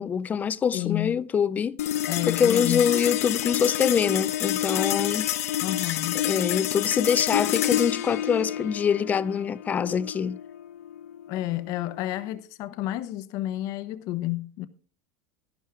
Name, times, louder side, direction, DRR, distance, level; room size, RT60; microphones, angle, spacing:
voice 1, 0.0-1.8 2.3-5.3 6.2-10.4, left 7 dB, 20° left, 0.5 m, -25 dB
voice 2, 0.7-1.2 2.1-2.9 5.6-6.3 11.3-14.7, left 15 dB, 50° left, 0.9 m, -30 dB
sound 1, 1.8-12.4, left 12 dB, 90° left, 0.7 m, -29 dB
12.0 x 11.5 x 3.6 m
supercardioid pair, 145°, 8 cm